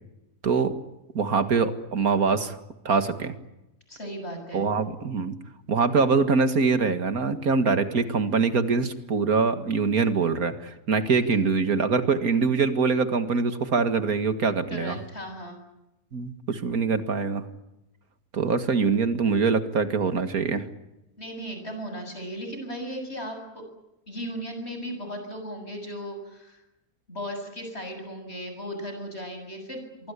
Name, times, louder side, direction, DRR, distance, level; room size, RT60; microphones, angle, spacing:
voice 1, 1.1-2.6 2.9-3.4 4.5-5.4 5.7-15.0 16.1-17.4 18.3-20.7, right 5 dB, 80° right, 10 dB, 2.4 m, -24 dB
voice 2, 3.9-4.7 14.7-15.6 21.2-23.6 24.1-26.6 27.1-30.1, equal, 45° left, 5 dB, 7.9 m, -36 dB
26.0 x 23.5 x 8.4 m, 0.94 s
omnidirectional pair, 1.5 m